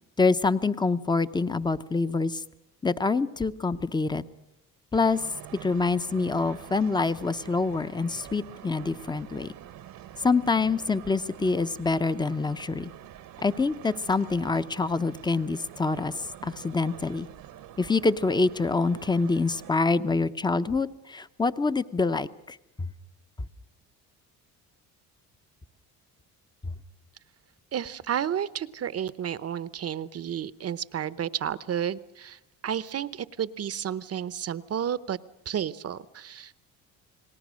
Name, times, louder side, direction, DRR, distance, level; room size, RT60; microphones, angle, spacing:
voice 1, 0.2-2.4 2.8-4.2 4.9-5.2 5.6-9.5 10.2-12.9 13.4-16.1 16.4-17.3 17.8-22.9, left 3 dB, 10° left, 12 dB, 0.7 m, -26 dB
sound 1, 4.9-19.7, right 11 dB, 70° right, 1.2 m, -46 dB
voice 2, 27.7-35.2 35.5-36.5, right 9 dB, 40° right, 16 dB, 0.8 m, -31 dB
29.5 x 19.0 x 6.3 m, 0.86 s
cardioid pair, 100°, 36 cm